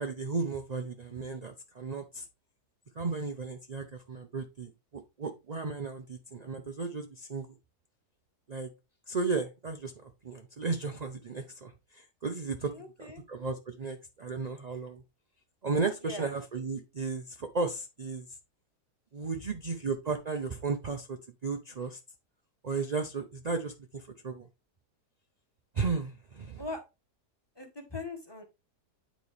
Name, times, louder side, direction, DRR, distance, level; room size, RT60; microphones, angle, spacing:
voice 1, 0.0-2.2 3.0-7.5 8.5-8.7 9.1-12.7 13.0-15.0 15.6-18.4 19.1-22.0 22.6-24.5 25.7-26.6, right 4 dB, 60° right, 5 dB, 0.4 m, -34 dB
voice 2, 12.7-13.2 16.0-16.3 26.6-26.8 27.6-28.4, left 3 dB, 15° left, 4 dB, 1.4 m, -40 dB
9.0 x 4.1 x 3.3 m, 0.25 s
omnidirectional pair, 1.7 m